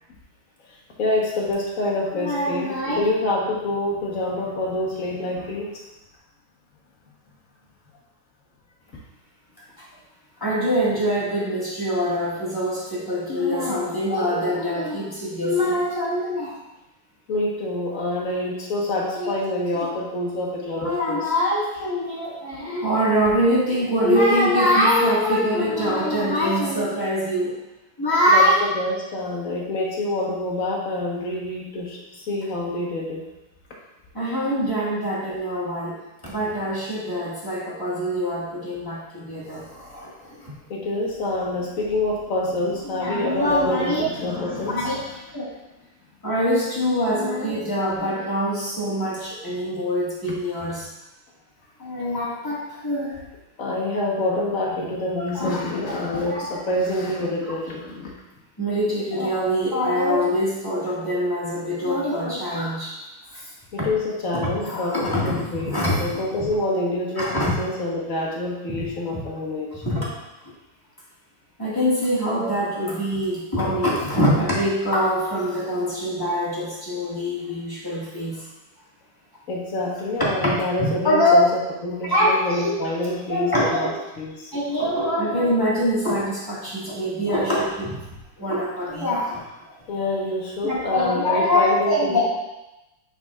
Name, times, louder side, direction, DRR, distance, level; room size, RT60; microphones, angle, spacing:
voice 1, 0.7-5.9 17.3-21.3 28.3-33.2 40.2-45.0 49.7-49.8 50.3-50.7 53.6-58.1 63.7-69.8 79.5-84.5 89.7-92.2, left 2 dB, 45° left, -3 dB, 1.3 m, -27 dB
voice 2, 2.1-3.0 9.8-9.9 10.4-16.5 19.2-19.3 19.8-19.9 20.7-27.5 28.0-28.7 34.1-40.5 42.8-44.0 44.7-45.0 45.3-45.5 46.2-50.9 51.8-53.2 55.2-55.5 56.1-56.4 58.6-62.9 63.3-63.4 63.8-63.9 64.4-66.5 67.2-67.5 68.7-68.9 69.1-69.2 69.8-70.1 71.6-78.4 80.2-81.3 82.1-82.7 83.3-83.9 84.5-88.0 88.4-89.4 90.6-92.2, equal, 10° left, -7 dB, 1.5 m, -24 dB
8.8 x 5.5 x 2.4 m, 0.97 s
omnidirectional pair, 2.3 m